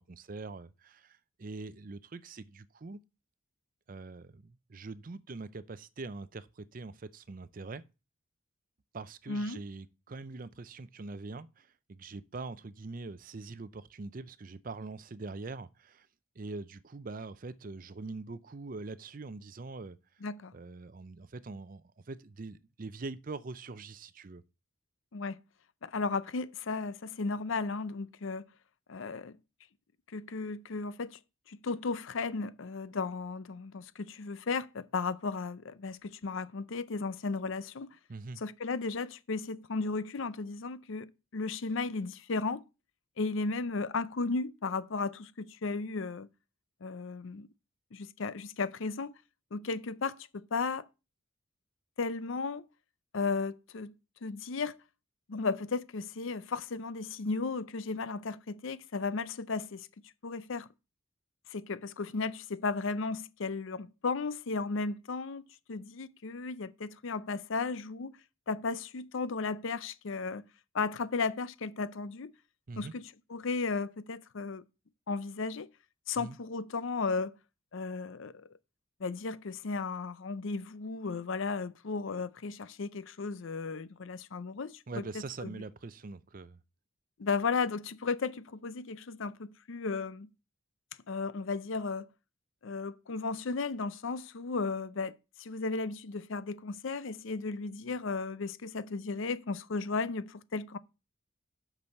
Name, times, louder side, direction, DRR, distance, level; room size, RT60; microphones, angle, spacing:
voice 1, 0.0-3.0 3.9-7.8 8.9-16.1 16.4-20.0 20.5-24.4 38.1-38.4 72.7-72.9 76.2-76.4 84.9-86.6, right 3 dB, 40° right, 0.5 m, -43 dB
voice 2, 9.3-9.6 20.2-20.5 25.1-25.4 25.8-28.4 28.9-29.4 30.1-31.2 31.5-38.0 38.4-42.6 43.2-46.3 46.8-47.5 47.9-49.1 49.5-50.9 52.0-52.6 53.1-53.9 54.2-54.8 55.3-59.9 60.2-60.7 61.5-65.4 65.7-68.1 68.5-70.4 70.7-72.3 72.8-74.6 75.1-75.7 76.1-77.3 77.7-78.5 79.0-85.0 85.4-85.5 87.2-90.3 91.1-92.1 92.6-100.8, left 4 dB, 65° left, 0.5 m, -35 dB
8.7 x 6.1 x 5.3 m
head